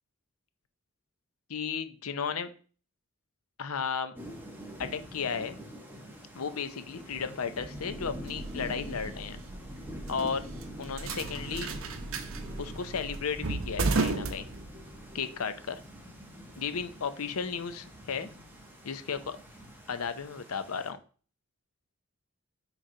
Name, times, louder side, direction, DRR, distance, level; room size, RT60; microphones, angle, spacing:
voice 1, 1.5-2.5 3.6-4.2 4.8-5.6 6.3-9.4 10.1-10.5 10.8-11.7 12.6-14.5 15.1-15.8 16.6-18.3 18.8-19.4 19.9-21.0, left 6 dB, 85° left, 11 dB, 0.7 m, -34 dB
Thunder / Rain, 4.2-20.9, equal, 10° right, 1.1 m, -45 dB
sound 1, 7.8-15.1, right 3 dB, 70° right, 0.8 m, -35 dB
9.7 x 3.2 x 3.8 m, 0.40 s
head